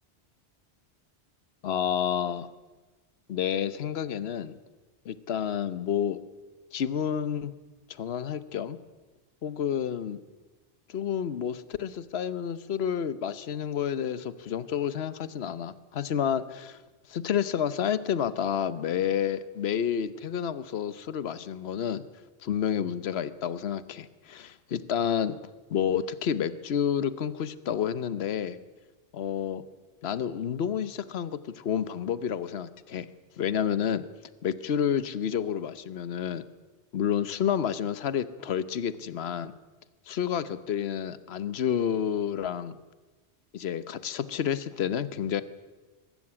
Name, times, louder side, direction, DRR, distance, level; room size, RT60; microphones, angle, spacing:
voice 1, 1.6-2.5 3.3-4.5 5.0-6.2 6.7-7.5 7.9-8.8 9.4-10.2 10.9-16.8 17.1-22.0 22.4-25.3 25.7-28.6 29.1-29.6 30.0-33.1 33.4-34.0 34.4-36.4 36.9-39.5 40.1-42.8 43.5-45.4, left 8 dB, 70° left, 15 dB, 1.1 m, -29 dB
23.0 x 13.5 x 9.8 m, 1.2 s
omnidirectional pair, 1.1 m